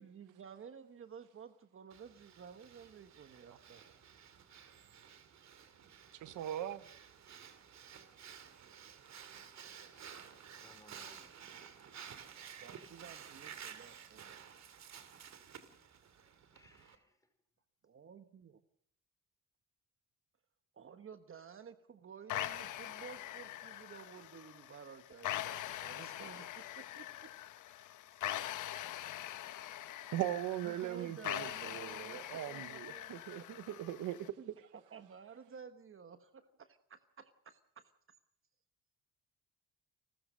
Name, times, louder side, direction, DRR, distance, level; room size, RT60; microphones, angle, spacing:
voice 1, 0.0-3.8 12.3-14.4 17.8-18.5 20.7-27.3 28.1-28.2 30.6-33.1 33.4-33.5 34.4-37.9, right 7 dB, 45° right, 1.2 m, -53 dB
Breathing, 1.9-16.9, right 8 dB, 65° right, 2.6 m, -53 dB
voice 2, 6.1-6.8 30.1-34.2, right 12 dB, 80° right, 1.1 m, -39 dB
voice 3, 9.5-12.3 16.5-17.1, left 2 dB, 10° left, 4.8 m, -65 dB
sound 1, 22.3-34.3, left 13 dB, 85° left, 1.2 m, -43 dB
29.0 x 14.0 x 6.5 m
cardioid pair, 90°, 30 cm